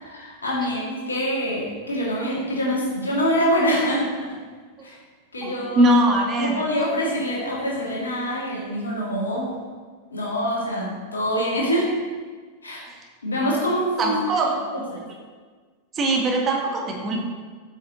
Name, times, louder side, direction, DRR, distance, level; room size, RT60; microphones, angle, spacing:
voice 1, 0.0-4.3 4.8-5.0 5.3-6.0 6.4-9.5 10.1-11.9 12.6-12.9 13.2-15.1, equal, 75° left, -4 dB, 1.9 m, -25 dB
voice 2, 5.4-6.6 12.9-13.0 14.0-14.5 15.9-17.2, right 1 dB, 25° right, 0 dB, 1.2 m, -21 dB
8.0 x 6.4 x 2.9 m, 1.5 s
figure-of-eight pair, 90°, 0 cm